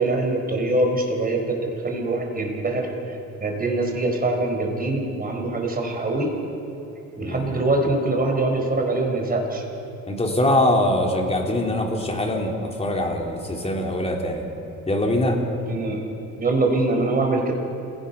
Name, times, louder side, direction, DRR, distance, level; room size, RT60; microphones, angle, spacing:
voice 1, 0.0-6.3 7.2-9.6 15.6-16.0 16.4-17.5, right 2 dB, 30° right, 2 dB, 4.5 m, -23 dB
voice 2, 7.2-7.6 10.1-14.5 14.9-15.4, left 1 dB, 20° left, 0 dB, 3.6 m, -23 dB
27.5 x 17.5 x 5.6 m, 2.8 s
cardioid pair, 90°, 30 cm